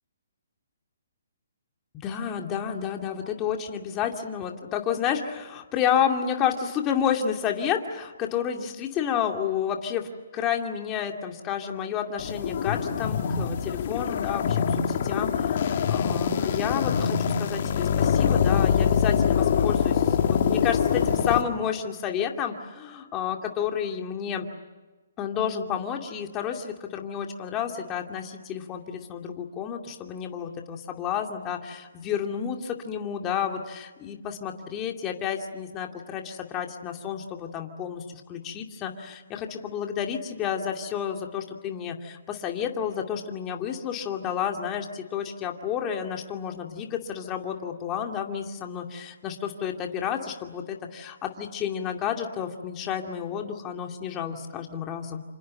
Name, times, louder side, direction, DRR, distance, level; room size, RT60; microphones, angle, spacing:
voice 1, 1.9-24.4 25.2-55.2, left 8 dB, 20° left, 3 dB, 2.5 m, -30 dB
sound 1, 12.2-21.4, left 7 dB, 50° left, 2.7 m, -24 dB
28.0 x 27.0 x 7.7 m, 1.2 s
hypercardioid pair, 150°, 0 cm